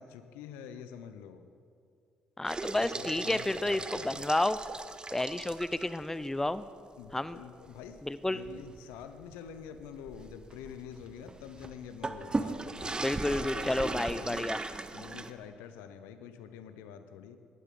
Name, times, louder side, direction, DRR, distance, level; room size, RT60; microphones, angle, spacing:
voice 1, 0.0-1.4 2.7-4.2 7.0-8.0 8.3-13.0 13.3-14.6 14.9-17.4, left 8 dB, 80° left, 10 dB, 0.7 m, -47 dB
voice 2, 2.4-4.6 5.1-6.7 7.1-7.4 8.0-8.4 13.0-14.6, left 1 dB, 10° left, 15 dB, 0.5 m, -31 dB
sound 1, 2.5-6.0 6.5-6.6 7.0-7.1 7.7-15.3, right 3 dB, 25° right, 0.8 m, -38 dB
17.5 x 12.5 x 3.8 m, 2.3 s
hypercardioid pair, 50°, 4 cm